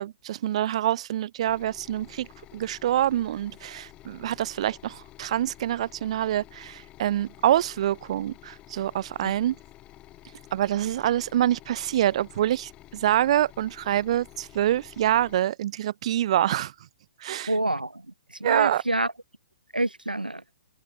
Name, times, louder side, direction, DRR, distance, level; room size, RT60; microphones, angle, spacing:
voice 1, 0.0-9.5 10.5-16.7 17.2-17.5 18.4-18.8, right 12 dB, 45° right, 0.8 m, -26 dB
sound 1, 1.5-15.4, left 15 dB, 20° left, 1.8 m, -50 dB
voice 2, 17.5-18.0 18.4-19.1 19.7-20.4, right 1 dB, 85° right, 0.7 m, -27 dB
open air
figure-of-eight pair, 120°, 5 cm